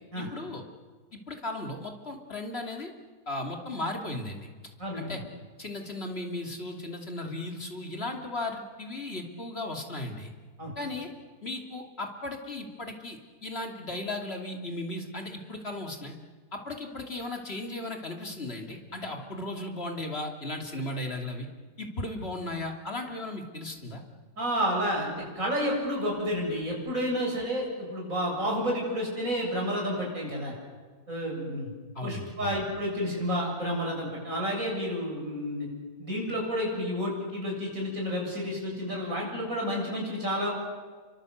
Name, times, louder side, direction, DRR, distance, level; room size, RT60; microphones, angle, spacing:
voice 1, 0.2-0.6 1.1-2.9 3.3-4.5 4.9-5.2 5.6-10.3 10.8-11.1 11.4-16.1 16.5-21.5 21.8-24.0 31.9-32.6, left 2 dB, 40° left, 2 dB, 3.0 m, -36 dB
voice 2, 4.8-5.2 10.6-10.7 24.4-30.5 31.1-31.7 32.0-35.7 36.0-40.5, equal, 55° right, -1 dB, 8.4 m, -30 dB
29.0 x 24.0 x 8.0 m, 1.5 s
omnidirectional pair, 1.7 m